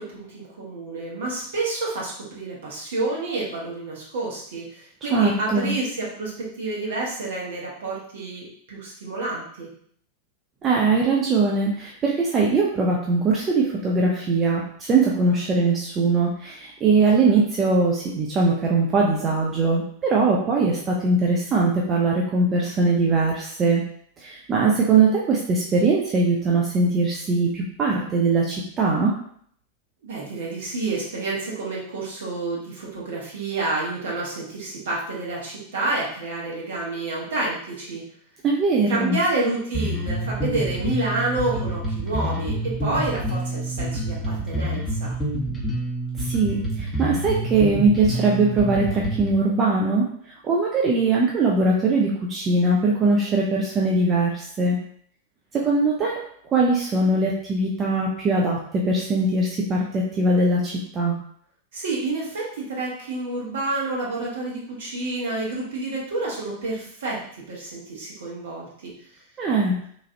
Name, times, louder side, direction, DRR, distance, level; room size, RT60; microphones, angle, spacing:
voice 1, 0.0-9.7 30.0-38.0 38.9-45.2 61.7-67.2 67.5-68.9, right 2 dB, 60° right, -5 dB, 1.1 m, -29 dB
voice 2, 5.1-5.7 10.6-23.8 24.2-29.1 38.4-39.2 46.2-50.1 50.4-54.8 55.5-56.2 56.5-61.1 69.4-69.8, right 3 dB, 25° right, -3 dB, 0.5 m, -21 dB
Bass guitar, 39.7-49.3, right 1 dB, 10° left, 0.8 m, -27 dB
3.1 x 2.4 x 2.6 m, 0.62 s
figure-of-eight pair, 90°, 0 cm